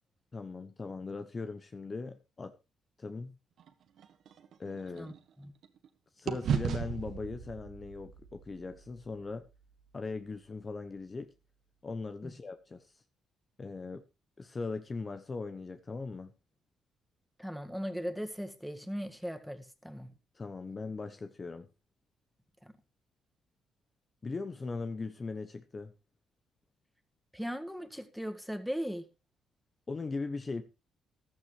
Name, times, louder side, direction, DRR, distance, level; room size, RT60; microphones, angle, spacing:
voice 1, 0.3-2.5 3.0-3.3 4.6-5.1 6.1-9.5 9.9-11.3 11.8-13.0 13.6-14.0 14.4-16.3 20.3-21.7 24.2-25.9 29.9-30.6, left 3 dB, 30° left, 0.9 m, -39 dB
sound 1, 3.6-5.9 6.3-10.5, right 7 dB, 70° right, 1.5 m, -38 dB
voice 2, 5.0-5.5 12.2-12.3 17.4-20.1 27.3-29.1, equal, ahead, 1.8 m, -38 dB
14.5 x 12.0 x 3.2 m
cardioid pair, 90°, 0 cm